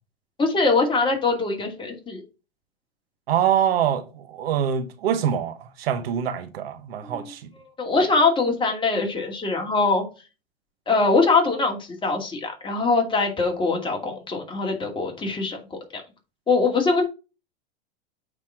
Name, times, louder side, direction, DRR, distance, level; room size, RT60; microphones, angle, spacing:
voice 1, 0.4-2.2 7.0-7.2 7.8-10.1 10.9-16.0 16.5-17.0, left 3 dB, 15° left, 2.6 m, -22 dB
voice 2, 3.3-7.4, right 9 dB, 70° right, 1.2 m, -24 dB
8.8 x 4.3 x 4.5 m
hypercardioid pair, 110°, 31 cm